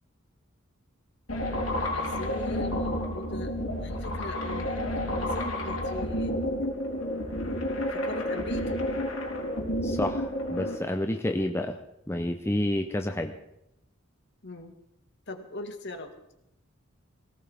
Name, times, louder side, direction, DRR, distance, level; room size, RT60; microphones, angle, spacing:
sound 1, 1.3-10.8, left 1 dB, 80° left, 3.7 m, -30 dB
voice 1, 1.5-3.5 3.8-6.3 7.5-7.6 7.9-8.8 14.4-14.8 15.3-16.1, left 2 dB, 55° left, 5 dB, 1.9 m, -40 dB
voice 2, 9.8-11.8 12.1-13.4, left 1 dB, 10° left, 5 dB, 0.7 m, -29 dB
19.5 x 17.5 x 3.6 m, 0.81 s
head